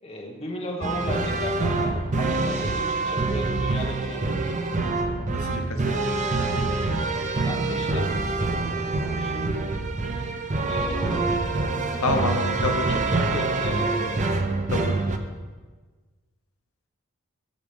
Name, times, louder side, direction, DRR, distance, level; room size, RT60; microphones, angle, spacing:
voice 1, 0.0-4.5 7.5-8.1 8.4-9.6 10.7-11.8 12.9-14.1, left 1 dB, 30° left, 0 dB, 1.2 m, -36 dB
sound 1, 0.8-15.2, right 3 dB, 35° right, 0.6 m, -26 dB
voice 2, 5.3-5.8 10.9-11.2 12.0-12.9 14.7-15.0, left 2 dB, 75° left, 4 dB, 0.9 m, -28 dB
13.0 x 5.0 x 5.2 m, 1.4 s
head